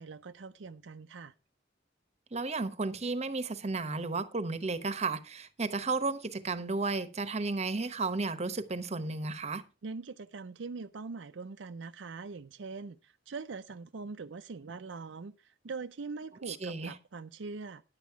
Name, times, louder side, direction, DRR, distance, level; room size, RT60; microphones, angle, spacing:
voice 1, 0.0-1.3 9.8-17.8, right 4 dB, 80° right, 0.5 m, -42 dB
voice 2, 2.3-9.6 16.5-16.9, right 3 dB, 35° right, 1.0 m, -33 dB
10.5 x 8.3 x 4.6 m
head